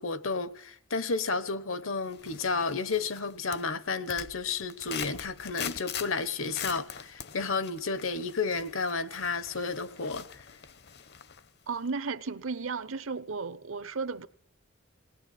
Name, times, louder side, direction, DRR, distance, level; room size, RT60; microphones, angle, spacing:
voice 1, 0.0-10.5, left 4 dB, 70° left, 1.2 m, -32 dB
sound 1, 2.1-3.2 3.5-11.5 11.9-12.0, left 8 dB, 55° left, 0.9 m, -42 dB
voice 2, 11.7-14.3, right 4 dB, 70° right, 0.9 m, -34 dB
20.5 x 19.0 x 9.3 m
head